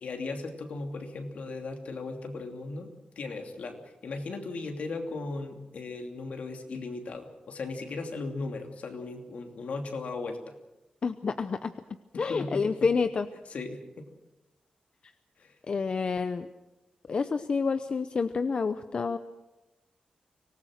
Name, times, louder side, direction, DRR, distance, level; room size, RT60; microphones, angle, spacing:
voice 1, 0.0-2.9 3.2-10.5 12.3-12.7 13.5-14.1 15.4-15.6, left 3 dB, 70° left, 4 dB, 2.9 m, -37 dB
voice 2, 11.0-11.7 12.2-13.3 15.7-16.5 17.1-19.2, left 5 dB, 45° left, 10 dB, 0.7 m, -28 dB
25.0 x 19.0 x 6.4 m, 1.0 s
wide cardioid pair, 140°, 2 cm